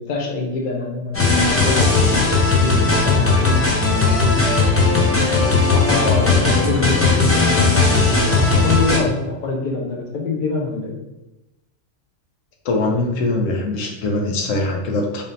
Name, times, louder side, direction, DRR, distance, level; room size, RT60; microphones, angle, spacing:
voice 1, 0.0-4.5 5.2-11.0, left 3 dB, 50° left, 1 dB, 0.7 m, -25 dB
sound 1, 1.1-9.0, left 3 dB, 20° left, 0.4 m, -17 dB
voice 2, 12.6-15.2, left 2 dB, 85° left, 2 dB, 1.0 m, -22 dB
3.4 x 2.7 x 3.9 m, 0.99 s
omnidirectional pair, 1.3 m